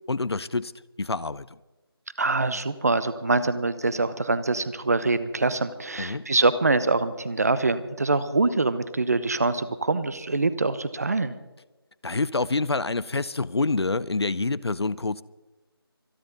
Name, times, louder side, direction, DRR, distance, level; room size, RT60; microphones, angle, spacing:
voice 1, 0.1-0.7 1.0-1.5 6.0-6.3 12.0-15.2, left 3 dB, 85° left, 0.7 m, -27 dB
voice 2, 2.2-11.3, right 3 dB, 40° right, 0.9 m, -24 dB
sound 1, 3.9-9.6, right 2 dB, 65° right, 6.9 m, -56 dB
25.5 x 10.5 x 4.0 m
figure-of-eight pair, 170°, 13 cm